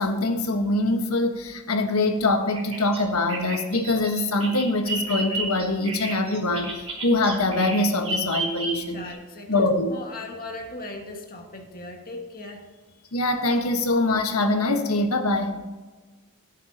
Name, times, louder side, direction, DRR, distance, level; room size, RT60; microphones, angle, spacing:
voice 1, 0.0-9.0 9.5-9.9 13.1-15.6, left 2 dB, 75° left, 6 dB, 1.5 m, -23 dB
Bird vocalization bird call bird song, 2.5-9.1, right 2 dB, 30° right, 3.2 m, -32 dB
voice 2, 8.9-12.7, left 2 dB, 45° left, 2 dB, 1.8 m, -38 dB
16.5 x 9.1 x 2.9 m, 1.2 s
head